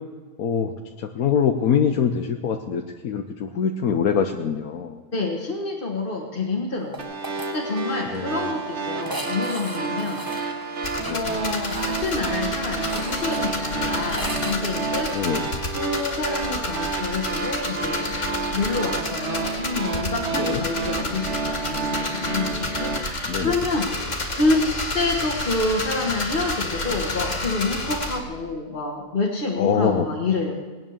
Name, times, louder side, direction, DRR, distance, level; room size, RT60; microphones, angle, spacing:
voice 1, 0.4-0.7 1.0-5.0 8.1-8.5 11.1-11.4 15.1-15.5 20.4-20.6 23.3-23.6 29.6-30.1, left 7 dB, 80° left, 4 dB, 1.3 m, -24 dB
voice 2, 5.1-7.0 7.2-10.3 10.7-15.5 15.7-18.2 18.5-24.6 24.9-30.5, left 3 dB, 40° left, -2 dB, 1.9 m, -28 dB
sound 1, 6.9-7.5 7.8-7.9 8.1-8.2 9.0-14.6, right 1 dB, 15° right, 1.3 m, -36 dB
sound 2, 7.0-23.0, right 4 dB, 50° right, 1.6 m, -30 dB
sound 3, 10.8-28.2, left 2 dB, 55° left, 2.5 m, -30 dB
20.5 x 9.4 x 7.3 m, 1.4 s
omnidirectional pair, 1.5 m